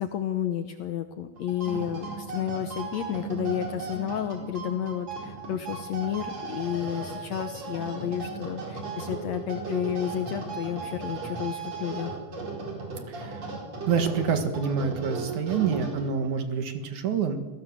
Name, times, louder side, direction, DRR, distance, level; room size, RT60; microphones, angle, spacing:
voice 1, 0.0-12.2, left 10 dB, 70° left, 8 dB, 1.7 m, -31 dB
sound 1, 1.4-16.3, right 3 dB, 45° right, 5.5 m, -36 dB
voice 2, 13.1-13.4 13.9-17.4, right 6 dB, 60° right, 8 dB, 2.9 m, -27 dB
26.0 x 17.0 x 7.5 m, 1.2 s
omnidirectional pair, 4.2 m